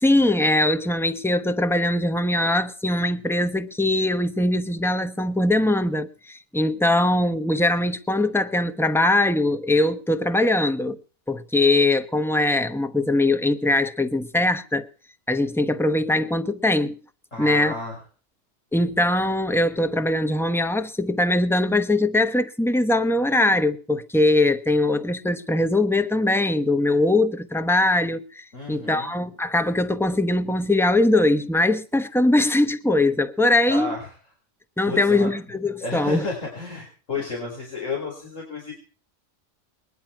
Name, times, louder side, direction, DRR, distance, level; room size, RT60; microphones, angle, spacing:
voice 1, 0.0-11.0 11.3-14.9 15.3-17.0 17.4-17.7 18.7-33.9 34.8-36.3, left 2 dB, ahead, 0.8 m, -21 dB
voice 2, 17.3-18.0 28.5-29.1 33.7-34.1 34.9-35.3 35.8-38.7, left 3 dB, 85° left, 5.4 m, -32 dB
21.5 x 10.5 x 5.9 m
omnidirectional pair, 1.3 m